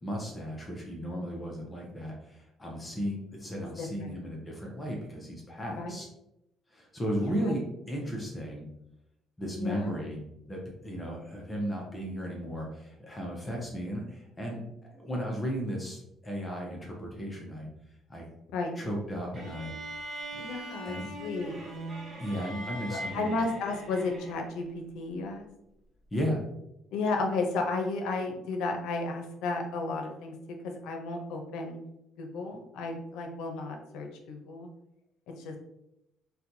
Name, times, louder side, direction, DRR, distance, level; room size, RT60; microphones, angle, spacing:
voice 1, 0.0-6.1 6.7-8.7 9.4-10.2 10.5-17.7 18.1-18.3 18.8-19.7 20.3-20.4 20.9-21.1 22.2-23.4 26.1-26.4, equal, 15° left, -1 dB, 0.7 m, -35 dB
voice 2, 3.6-4.2 5.7-6.0 8.0-8.1 9.6-10.0 18.5-18.7 20.4-21.6 22.9-25.5 26.9-31.8 32.2-34.7 35.3-35.6, left 3 dB, 85° left, 3 dB, 0.6 m, -33 dB
sound 1, 19.3-24.6, right 1 dB, 40° right, 0.9 m, -41 dB
4.2 x 2.2 x 2.7 m, 0.84 s
cardioid pair, 130°, 0 cm